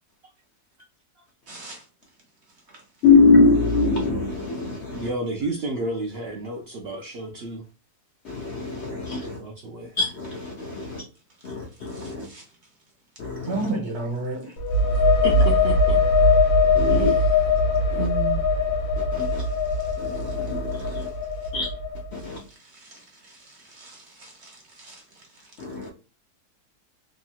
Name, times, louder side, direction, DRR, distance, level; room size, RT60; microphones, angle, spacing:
voice 1, 1.5-1.8 11.9-12.4 13.4-14.5 22.7-25.0, right 2 dB, 50° right, 1.1 m, -34 dB
voice 2, 3.0-5.1 8.2-9.4 10.0-11.0 11.4-12.3 13.2-13.7 15.2-15.3 16.7-17.1 17.9-18.1 19.1-19.4 20.0-21.1 21.5-21.7 22.1-22.4 25.6-25.9, left 4 dB, 60° left, 0.7 m, -23 dB
voice 3, 4.9-7.6 9.2-9.9 15.2-16.0 16.9-17.2 18.0-18.5, right 2 dB, 80° right, 0.5 m, -31 dB
sound 1, 14.6-22.2, left 3 dB, 75° left, 1.3 m, -21 dB
3.0 x 2.9 x 2.3 m
omnidirectional pair, 1.7 m